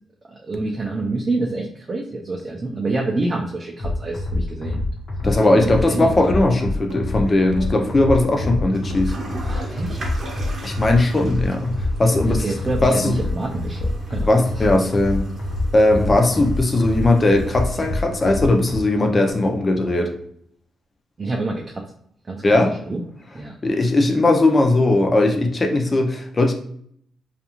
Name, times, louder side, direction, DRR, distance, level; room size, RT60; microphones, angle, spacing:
voice 1, 0.4-4.8 5.2-6.3 9.5-10.0 12.3-14.6 21.2-21.9 22.3-22.4 22.9-23.0 23.3-23.5, right 2 dB, 35° right, -1 dB, 0.4 m, -27 dB
sound 1, 3.8-18.8, left 2 dB, 55° left, 0.8 m, -26 dB
voice 2, 5.2-9.1 10.6-12.5 12.8-13.2 14.2-15.3 15.7-20.1 22.4-22.7 23.6-26.5, left 2 dB, 30° left, 3 dB, 0.5 m, -18 dB
sound 2, 6.2-11.4, equal, 85° right, 0.6 m, -39 dB
Toilet flush, 7.4-19.3, right 5 dB, 50° right, 0.8 m, -37 dB
2.4 x 2.3 x 2.9 m, 0.66 s
cardioid pair, 95°, 0 cm